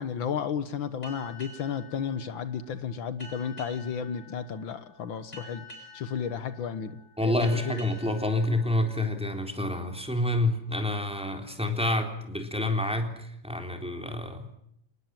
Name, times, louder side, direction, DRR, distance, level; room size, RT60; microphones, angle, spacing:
voice 1, 0.0-7.9, left 7 dB, 75° left, 12 dB, 2.0 m, -33 dB
sound 1, 1.0-10.2, left 2 dB, 35° left, 8.0 m, -49 dB
voice 2, 7.2-14.5, left 1 dB, 5° right, 4 dB, 3.8 m, -28 dB
28.5 x 19.5 x 7.7 m, 0.74 s
omnidirectional pair, 2.2 m